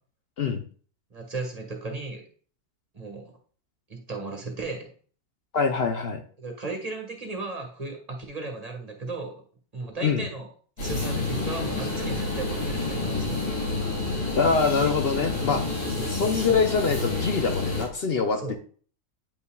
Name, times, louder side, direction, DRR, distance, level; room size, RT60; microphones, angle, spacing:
voice 1, 1.1-2.3 2.9-3.3 3.9-4.9 6.4-9.4 9.7-10.5 10.8-13.3 15.9-16.5 18.4-18.5, right 3 dB, 25° right, 1 dB, 1.5 m, -35 dB
voice 2, 5.5-6.2 10.0-10.3 14.3-15.6 16.2-18.6, left 5 dB, 55° left, 5 dB, 0.7 m, -24 dB
sound 1, 10.8-17.9, left 3 dB, 85° left, 3.1 m, -29 dB
9.2 x 5.5 x 2.3 m, 0.43 s
omnidirectional pair, 1.6 m